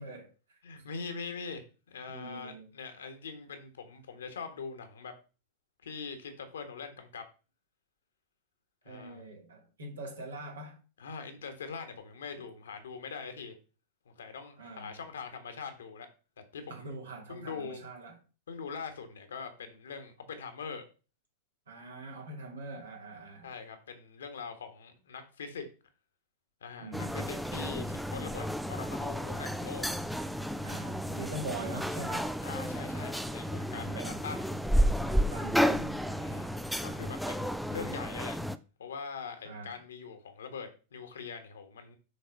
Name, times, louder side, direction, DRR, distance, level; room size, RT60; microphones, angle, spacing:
voice 1, 0.0-0.6 2.1-2.7 8.8-10.8 14.6-15.0 16.7-18.2 21.7-23.5 26.8-27.1 30.6-32.3 33.7-34.2 35.0-36.0 39.4-39.8, right 2 dB, 65° right, 2.4 m, -43 dB
voice 2, 0.6-5.1 5.8-7.2 8.8-9.3 11.0-13.5 14.0-16.1 16.5-16.9 17.3-17.8 18.5-20.8 23.4-25.6 26.6-29.9 32.4-34.5 36.1-38.4 38.8-42.0, left 5 dB, 65° left, 1.5 m, -42 dB
sound 1, 26.9-38.6, equal, ahead, 0.4 m, -32 dB
6.6 x 4.2 x 5.3 m
figure-of-eight pair, 90°, 0 cm